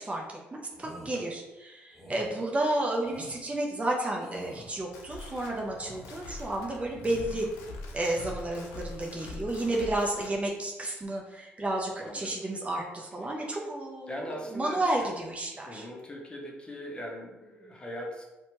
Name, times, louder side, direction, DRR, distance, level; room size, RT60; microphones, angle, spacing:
voice 1, 0.0-7.5 7.9-15.9, right 1 dB, 25° right, -1 dB, 0.5 m, -32 dB
sound 1, 0.7-1.2 1.9-2.3 3.0-3.4 4.2-4.8 5.5-6.2 6.8-7.5 7.9-8.3, equal, ahead, 1.5 m, -48 dB
sound 2, 4.7-10.4, left 2 dB, 85° left, 0.4 m, -44 dB
voice 2, 12.0-12.4 14.1-15.1 15.7-18.2, equal, 20° left, -1 dB, 0.7 m, -40 dB
2.7 x 2.2 x 2.9 m, 1.0 s
supercardioid pair, 65°, 5 cm